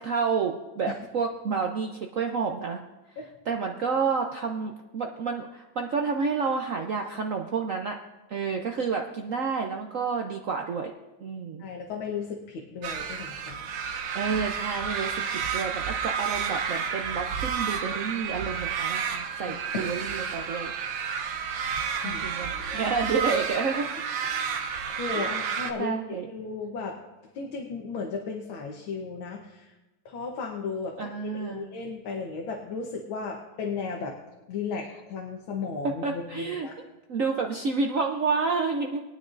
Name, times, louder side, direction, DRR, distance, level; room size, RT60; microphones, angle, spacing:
voice 1, 0.0-2.8 3.5-8.0 8.3-10.9 11.2-11.6 14.1-20.7 22.0-23.9 25.1-25.3 25.8-26.3 31.0-31.7 36.0-36.7 37.1-39.0, right 5 dB, 65° right, 2 dB, 0.8 m, -29 dB
voice 2, 11.6-13.7 19.5-20.0 22.0-22.2 22.7-22.8 24.5-24.7 25.0-26.0 26.3-27.0 27.3-29.7 30.1-31.1 31.3-34.2 34.5-36.8, left 5 dB, 80° left, 1 dB, 1.8 m, -35 dB
sound 1, 12.8-25.7, right 6 dB, 80° right, 1.7 m, -31 dB
22.0 x 9.7 x 2.5 m, 1.1 s
omnidirectional pair, 2.2 m